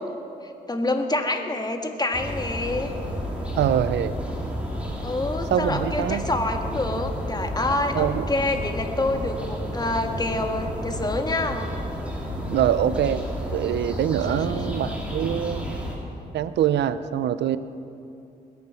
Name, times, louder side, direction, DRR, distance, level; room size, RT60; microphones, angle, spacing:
voice 1, 0.4-2.9 5.0-11.7 14.2-14.6, left 2 dB, 25° left, 5 dB, 1.7 m, -27 dB
sound 1, 2.1-16.0, equal, 5° right, 3.5 m, -31 dB
voice 2, 3.6-4.1 5.5-6.2 7.9-8.3 12.4-13.3 13.5-15.8 16.3-17.6, right 10 dB, 85° right, 14 dB, 0.6 m, -24 dB
20.5 x 8.7 x 7.0 m, 2.7 s
cardioid pair, 70°, 18 cm